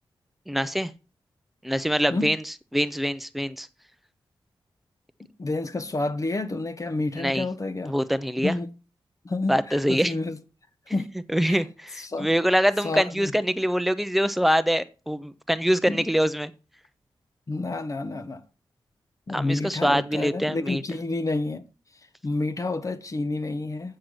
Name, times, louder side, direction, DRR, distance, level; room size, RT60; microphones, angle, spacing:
voice 1, 0.5-0.9 1.6-2.4 2.7-3.7 7.2-7.4 7.9-8.6 9.5-10.1 11.3-16.5 19.3-20.8, equal, ahead, 0.7 m, -24 dB
voice 2, 5.2-7.9 8.4-8.7 9.2-10.4 10.9-11.1 11.5-11.6 11.9-12.3 12.8-13.3 15.9-16.1 17.5-18.4 19.3-21.7 22.2-24.0, left 2 dB, 35° left, 0.9 m, -29 dB
7.9 x 6.6 x 6.0 m
wide cardioid pair, 110°, 9 cm